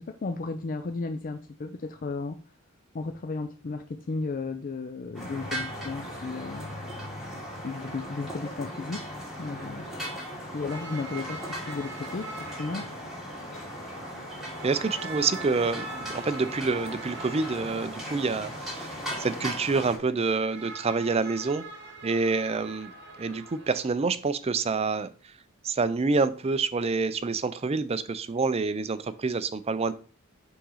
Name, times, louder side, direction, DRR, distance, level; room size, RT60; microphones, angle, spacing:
voice 1, 0.0-2.4 2.9-6.7 7.6-9.1 9.4-9.9 10.5-12.9, left 3 dB, 40° left, 7 dB, 0.4 m, -34 dB
sound 1, 5.1-20.0, equal, ahead, 2.9 m, -38 dB
sound 2, 10.7-23.9, right 3 dB, 60° right, 1.3 m, -44 dB
voice 2, 14.6-21.7 22.0-25.3 25.6-29.9, right 4 dB, 30° right, 13 dB, 0.5 m, -27 dB
5.7 x 3.7 x 5.6 m, 0.39 s
head